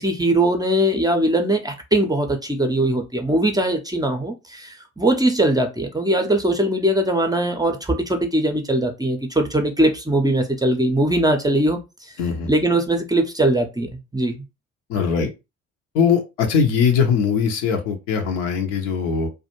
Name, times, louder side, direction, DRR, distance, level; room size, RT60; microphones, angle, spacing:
voice 1, 0.0-11.8 12.5-14.4, right 1 dB, 10° right, 0.5 m, -21 dB
voice 2, 12.2-12.5 14.9-15.3 15.9-19.3, left 6 dB, 70° left, 0.7 m, -20 dB
2.4 x 2.2 x 2.9 m
figure-of-eight pair, 45°, 37 cm